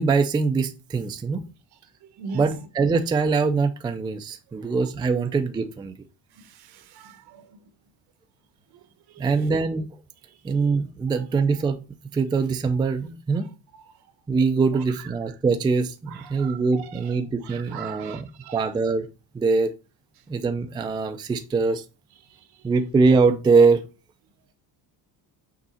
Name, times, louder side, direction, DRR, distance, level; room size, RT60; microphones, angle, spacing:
voice 1, 0.0-1.4 2.3-5.9 9.2-10.0 10.4-11.8 12.1-13.5 14.3-18.3 18.5-19.1 19.3-19.7 20.3-21.8 22.6-23.8, right 4 dB, 10° right, 0.4 m, -23 dB
voice 2, 2.0-2.6 4.5-4.7 6.3-7.6 8.7-9.5 10.3-10.6 13.7-13.8 14.7-15.3 16.1-18.7 22.2-22.7, right 6 dB, 70° right, 1.1 m, -42 dB
6.3 x 3.6 x 4.2 m
cardioid pair, 160°, 40 cm